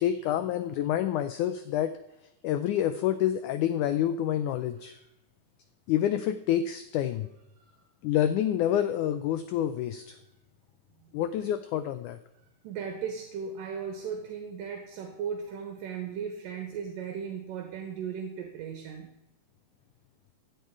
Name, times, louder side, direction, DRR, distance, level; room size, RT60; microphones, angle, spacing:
voice 1, 0.0-1.9 2.4-5.0 5.9-7.3 8.0-10.2 11.1-12.2, left 11 dB, 80° left, 11 dB, 1.8 m, -28 dB
voice 2, 12.6-19.1, right 7 dB, 75° right, 4 dB, 2.8 m, -36 dB
16.0 x 10.0 x 4.7 m, 0.91 s
omnidirectional pair, 4.2 m